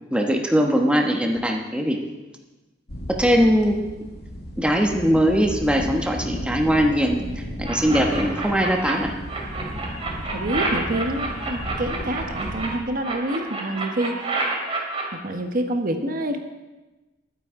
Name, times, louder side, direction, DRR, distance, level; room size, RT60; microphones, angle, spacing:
voice 1, 0.1-2.0 3.1-3.8 4.6-9.1, equal, 5° right, 1 dB, 1.1 m, -21 dB
sound 1, 2.9-12.8, equal, 60° left, 2.0 m, -34 dB
sound 2, 7.6-8.9 9.3-12.7 13.0-15.0, right 3 dB, 30° right, 2.5 m, -28 dB
voice 2, 10.2-14.3 15.1-16.4, right 1 dB, 50° right, 5 dB, 1.1 m, -27 dB
21.0 x 9.5 x 3.7 m, 1.1 s
head